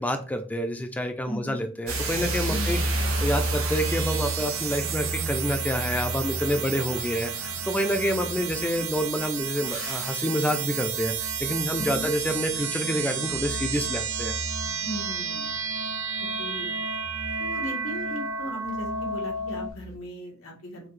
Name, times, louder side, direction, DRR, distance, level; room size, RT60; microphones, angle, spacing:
voice 1, 0.0-14.3, equal, 10° left, 6 dB, 0.4 m, -28 dB
voice 2, 1.2-1.6 2.5-2.8 6.5-6.8 8.2-8.3 11.8-12.1 14.8-15.5 16.4-16.7 17.4-20.9, equal, 90° left, -1 dB, 1.4 m, -37 dB
sound 1, 1.9-17.9 18.6-20.0, equal, 75° left, 1.2 m, -34 dB
sound 2, 1.9-19.7, right 6 dB, 85° right, 0.7 m, -31 dB
5.7 x 2.4 x 3.2 m, 0.37 s
head